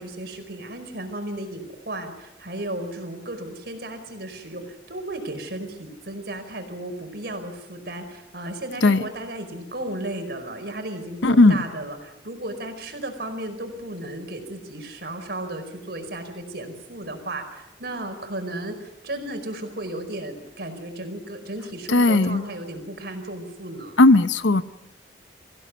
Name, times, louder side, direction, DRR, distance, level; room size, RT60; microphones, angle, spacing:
voice 1, 0.0-24.0, right 1 dB, 60° right, 5 dB, 4.8 m, -34 dB
voice 2, 11.2-11.6 21.9-22.4 24.0-24.6, left 2 dB, 85° left, 13 dB, 0.9 m, -16 dB
24.5 x 16.5 x 9.5 m, 0.96 s
head